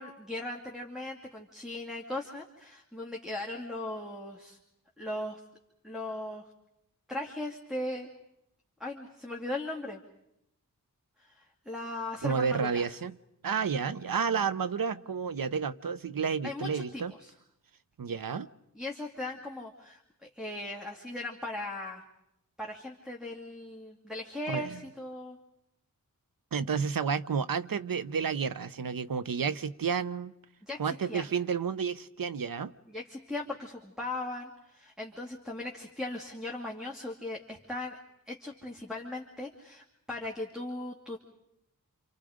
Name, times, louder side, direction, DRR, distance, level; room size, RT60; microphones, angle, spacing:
voice 1, 0.0-4.6 5.0-5.4 5.8-6.5 7.1-8.1 8.8-10.0 11.2-12.9 16.4-17.3 18.7-22.0 22.6-25.4 30.6-31.3 32.9-38.0 38.3-41.2, left 2 dB, ahead, 0 dB, 2.4 m, -38 dB
voice 2, 12.2-13.2 13.4-17.1 18.0-18.5 24.5-24.8 26.5-30.3 30.8-32.7, right 6 dB, 80° right, 15 dB, 0.8 m, -31 dB
28.0 x 27.5 x 5.1 m, 0.81 s
wide cardioid pair, 70°, 34 cm